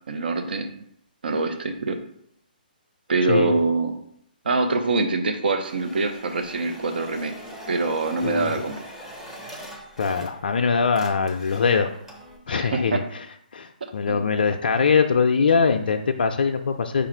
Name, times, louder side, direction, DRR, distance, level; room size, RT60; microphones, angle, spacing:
voice 1, 0.1-0.7 1.2-2.0 3.1-4.0 4.4-7.3 7.7-8.9 12.5-13.0 13.8-14.2, right 3 dB, 75° right, 6 dB, 0.6 m, -24 dB
sound 1, 5.6-10.6 10.8-12.4, equal, 5° right, 0.6 m, -42 dB
voice 2, 8.2-8.6 10.0-11.9 12.5-13.0 13.5-17.1, left 5 dB, 75° left, 5 dB, 0.3 m, -22 dB
5.0 x 2.4 x 4.4 m, 0.71 s
hypercardioid pair, 145°, 5 cm